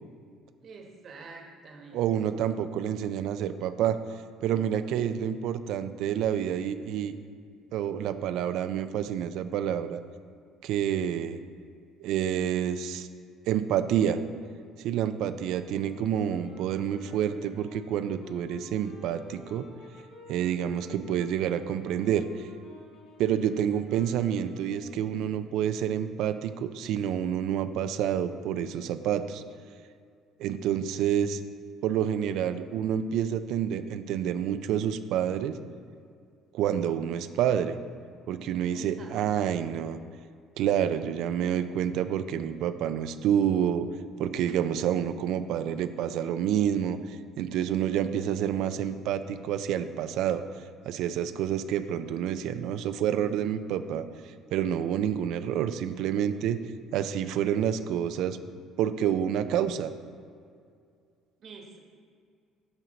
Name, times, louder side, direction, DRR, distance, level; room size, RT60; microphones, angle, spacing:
voice 1, 0.6-2.1 38.7-39.2 61.4-61.8, right 4 dB, 45° right, 1 dB, 1.2 m, -47 dB
voice 2, 1.9-4.0 4.4-7.1 7.7-10.0 10.6-11.4 12.0-13.1 13.5-14.2 14.8-19.7 20.3-22.5 23.2-29.4 30.4-31.4 31.8-35.6 36.5-37.8 38.3-40.0 40.6-43.9 44.2-50.4 50.9-56.6 56.9-58.4 58.8-59.9, right 9 dB, 70° right, 11 dB, 0.4 m, -28 dB
sound 1, 15.7-25.7, left 3 dB, 60° left, 1.8 m, -49 dB
12.5 x 4.4 x 4.0 m, 2.3 s
cardioid pair, 140°, 0 cm